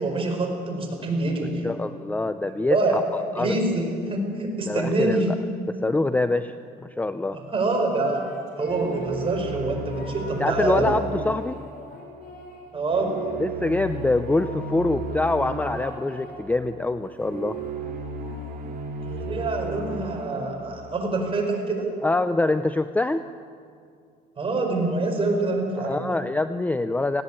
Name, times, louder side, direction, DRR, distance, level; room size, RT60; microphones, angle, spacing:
voice 1, 0.0-1.7 2.7-3.0 3.4-5.3 7.3-8.2 8.6-10.9 12.7-13.1 19.0-21.8 24.4-26.0, right 2 dB, 35° right, 1 dB, 5.4 m, -25 dB
voice 2, 1.6-3.0 3.4-3.6 4.7-5.3 5.7-6.5 6.8-7.4 10.4-11.6 13.4-17.6 22.0-23.2 25.8-27.2, left 2 dB, 10° left, 11 dB, 0.5 m, -25 dB
sound 1, 7.9-9.3 9.9-12.8 13.6-16.5 17.0-20.7, left 2 dB, 60° left, 4.0 m, -44 dB
sound 2, 8.7-21.7, right 3 dB, 60° right, 3.0 m, -35 dB
18.5 x 16.5 x 8.9 m, 2.3 s
cardioid pair, 110°, 17 cm